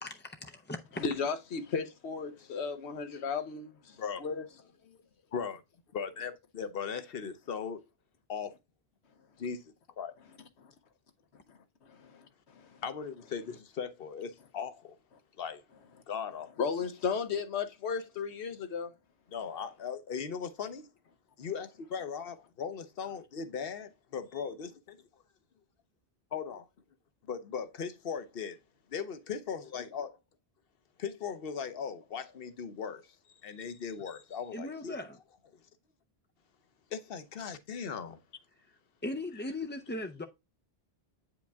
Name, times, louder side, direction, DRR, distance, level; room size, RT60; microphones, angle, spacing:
voice 1, 0.0-0.8 34.5-35.2 39.0-40.3, left 2 dB, 20° left, 0.3 m, -38 dB
voice 2, 1.0-4.4 10.6-10.7 11.5-12.8 16.6-18.9, left 5 dB, 85° left, 1.2 m, -35 dB
voice 3, 5.3-5.6 5.9-7.8 8.3-8.6 9.4-10.1 12.8-14.9 15.4-15.6 16.1-16.5 19.3-20.9 21.4-25.0 26.3-26.7 27.3-28.6 28.9-30.2 31.0-33.1 33.4-35.0 36.9-38.2, left 6 dB, 65° left, 1.0 m, -38 dB
8.3 x 5.2 x 3.5 m
omnidirectional pair, 1.1 m